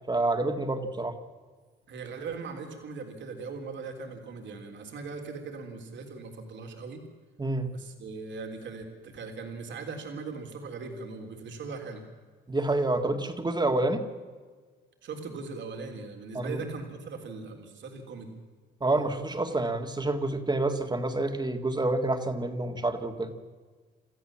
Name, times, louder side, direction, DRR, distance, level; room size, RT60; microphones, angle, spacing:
voice 1, 0.1-1.2 7.4-7.7 12.5-14.1 16.3-16.6 18.8-23.3, right 2 dB, 20° right, 6 dB, 2.0 m, -28 dB
voice 2, 1.9-7.0 7.7-12.0 15.0-18.3, right 4 dB, 65° right, 4 dB, 3.5 m, -39 dB
27.5 x 14.0 x 7.4 m, 1.5 s
cardioid pair, 90°, 20 cm